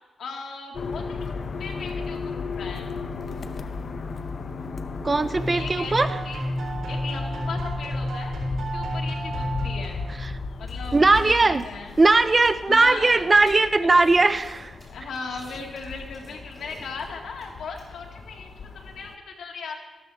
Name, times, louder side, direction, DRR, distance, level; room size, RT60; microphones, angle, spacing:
voice 1, 0.2-1.2 1.6-2.9 5.5-6.4 6.9-10.0 10.6-12.0 12.7-13.9 14.9-19.8, left 4 dB, 80° left, 1 dB, 2.0 m, -37 dB
sound 1, 0.7-19.2, left 4 dB, 55° left, 0.8 m, -36 dB
voice 2, 5.0-6.1 10.2-10.3 10.9-11.6 12.0-14.7, right 3 dB, 25° right, 12 dB, 0.5 m, -19 dB
sound 2, 5.3-10.5, equal, 85° right, 4.3 m, -31 dB
sound 3, 10.7-17.8, equal, 10° left, 4.5 m, -50 dB
14.0 x 12.5 x 3.5 m, 1.2 s
cardioid pair, 100°, 0 cm